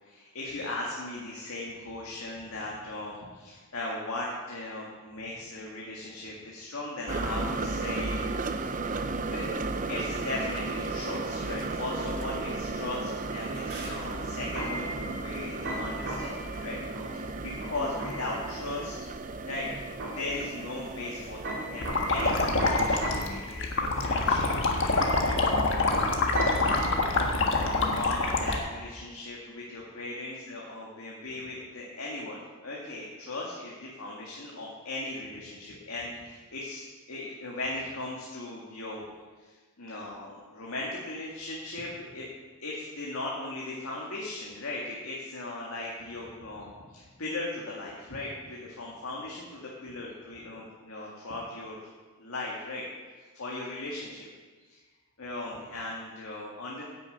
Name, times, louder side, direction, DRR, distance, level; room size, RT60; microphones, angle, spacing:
voice 1, 0.0-8.2 8.6-8.8 9.3-18.9 19.5-19.7 20.1-25.5 26.5-27.0 27.5-39.0 39.4-42.3 42.6-51.9 52.2-52.9 53.2-54.3 54.7-54.8 55.2-56.8, left 2 dB, 80° left, -4 dB, 1.9 m, -38 dB
sound 1, 7.1-22.6, right 3 dB, 40° right, 0.6 m, -34 dB
sound 2, 13.4-28.0, right 1 dB, 60° right, 3.3 m, -38 dB
sound 3, 21.8-28.6, left 3 dB, 60° left, 1.5 m, -26 dB
11.0 x 6.8 x 7.9 m, 1.4 s
head